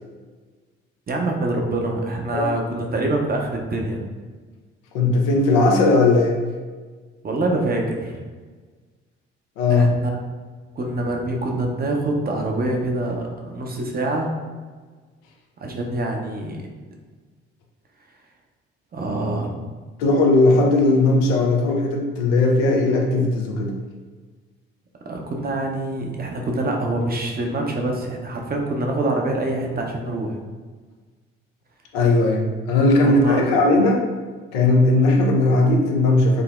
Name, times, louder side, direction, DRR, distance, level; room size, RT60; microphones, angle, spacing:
voice 1, 1.1-4.0 7.2-8.2 9.7-10.2 10.8-14.3 15.6-16.6 18.9-19.7 25.1-30.4 33.0-33.5, right 2 dB, 30° right, 1 dB, 0.6 m, -25 dB
voice 2, 4.9-6.4 9.6-9.9 20.0-23.7 31.9-34.0 34.5-36.4, left 2 dB, 85° left, 0 dB, 0.5 m, -18 dB
3.7 x 2.0 x 2.4 m, 1.4 s
hypercardioid pair, 55°, 29 cm